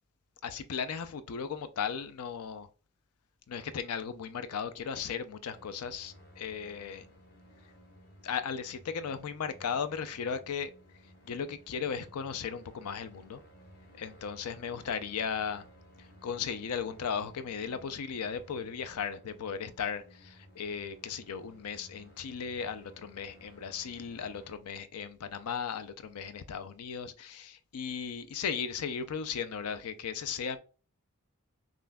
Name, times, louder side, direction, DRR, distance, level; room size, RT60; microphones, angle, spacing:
voice 1, 0.4-2.7 3.5-7.1 8.2-10.7 11.3-13.4 13.9-15.7 16.2-30.6, left 6 dB, 85° left, 0.5 m, -36 dB
sound 1, 5.5-24.6, equal, 45° left, 0.8 m, -57 dB
5.5 x 2.5 x 2.3 m
head